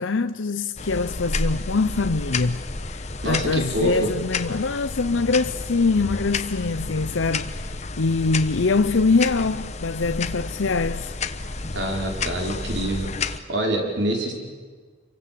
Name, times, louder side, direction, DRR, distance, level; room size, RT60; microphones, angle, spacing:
voice 1, 0.0-11.1, left 3 dB, 70° left, 0.7 m, -24 dB
sound 1, 0.8-13.4, left 3 dB, 35° left, 1.0 m, -31 dB
voice 2, 3.2-4.1 11.7-14.3, right 1 dB, 60° right, 5.0 m, -26 dB
28.0 x 24.0 x 7.7 m
head